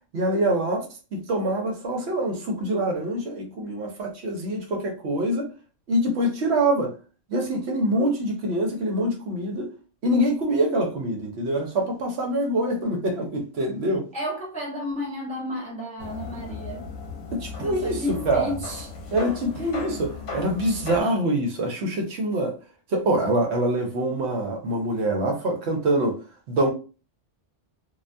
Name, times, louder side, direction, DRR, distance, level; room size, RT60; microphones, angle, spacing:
voice 1, 0.1-0.8 1.1-5.5 5.9-6.9 7.3-9.7 10.0-14.1 17.3-18.5 19.1-22.5 22.9-26.2 26.5-26.7, right 1 dB, 65° right, 0.8 m, -25 dB
voice 2, 14.1-16.9 17.6-18.9 19.6-19.7, left 1 dB, 10° left, 0.4 m, -32 dB
sound 1, 16.0-21.0, left 4 dB, 80° left, 0.9 m, -36 dB
2.3 x 2.1 x 2.5 m
omnidirectional pair, 1.3 m